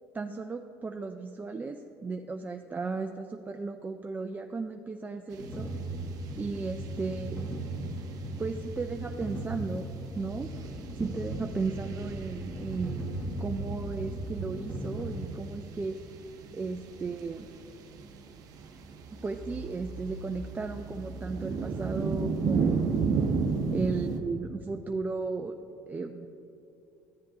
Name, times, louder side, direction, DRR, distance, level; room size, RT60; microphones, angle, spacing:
voice 1, 0.1-5.7 6.4-7.4 8.4-10.5 11.0-16.0 16.5-17.5 19.2-23.2 23.7-25.6 25.9-26.3, right 4 dB, 20° right, 5 dB, 0.4 m, -35 dB
sound 1, 5.3-24.2, right 5 dB, 55° right, 0.8 m, -35 dB
sound 2, 5.4-15.1, right 1 dB, 20° left, 2.0 m, -37 dB
13.0 x 7.6 x 2.8 m, 2.7 s
supercardioid pair, 80°, 8 cm